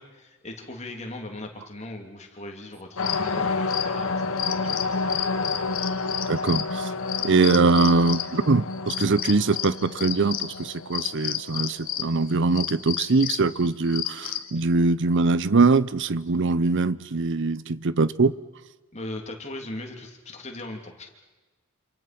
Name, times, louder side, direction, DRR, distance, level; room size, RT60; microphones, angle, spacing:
voice 1, 0.0-4.8 18.9-21.1, left 2 dB, 35° left, 2 dB, 3.0 m, -38 dB
sound 1, 3.0-14.5, left 5 dB, 75° left, 1.4 m, -29 dB
voice 2, 6.3-6.9 7.2-18.3, right 3 dB, 60° right, 18 dB, 0.7 m, -22 dB
27.5 x 27.0 x 6.0 m, 1.2 s
head